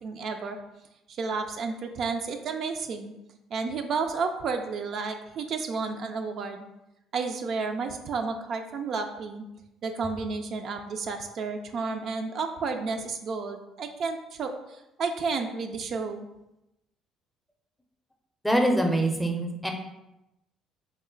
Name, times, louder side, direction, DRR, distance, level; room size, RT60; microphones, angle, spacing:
voice 1, 0.0-0.6 1.1-3.1 3.5-6.7 7.1-9.4 9.8-16.3, right 4 dB, 60° right, 5 dB, 0.3 m, -31 dB
voice 2, 18.4-19.7, right 1 dB, 5° left, 3 dB, 0.5 m, -24 dB
3.0 x 2.1 x 3.7 m, 0.92 s
supercardioid pair, 85°, 0 cm